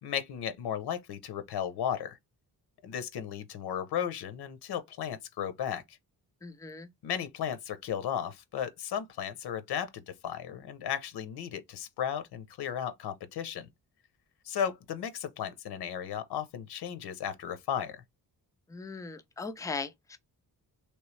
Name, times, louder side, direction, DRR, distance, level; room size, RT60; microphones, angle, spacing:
voice 1, 0.0-2.2 2.8-6.0 7.0-13.7 14.4-18.0, left 9 dB, 80° left, 0.7 m, -35 dB
voice 2, 6.4-6.9 18.7-20.2, left 4 dB, 10° left, 0.3 m, -39 dB
3.2 x 3.1 x 3.1 m
wide cardioid pair, 145°, 39 cm